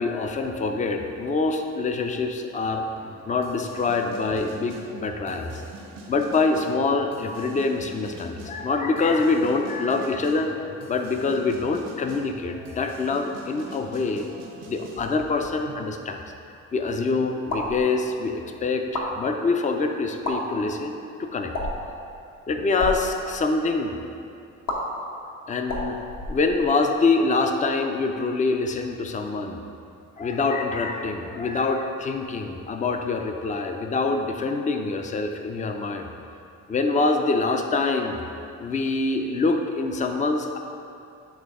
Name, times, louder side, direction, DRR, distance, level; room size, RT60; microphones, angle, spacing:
voice 1, 0.0-2.8 3.3-5.6 6.1-10.5 10.9-14.3 14.7-16.2 16.7-21.5 22.5-24.0 25.5-26.0 26.3-29.6 30.2-36.1 36.7-38.2 38.6-40.6, left 3 dB, 25° left, 5 dB, 0.5 m, -25 dB
sound 1, 3.0-15.9, right 2 dB, 90° right, 0.9 m, -44 dB
sound 2, 17.5-17.8 18.8-19.1 20.1-20.4 21.5-21.9 22.7-23.0 24.7-24.8 25.6-26.8, left 2 dB, 60° left, 1.1 m, -30 dB
8.6 x 3.4 x 3.7 m, 2.5 s
cardioid pair, 90°, 30 cm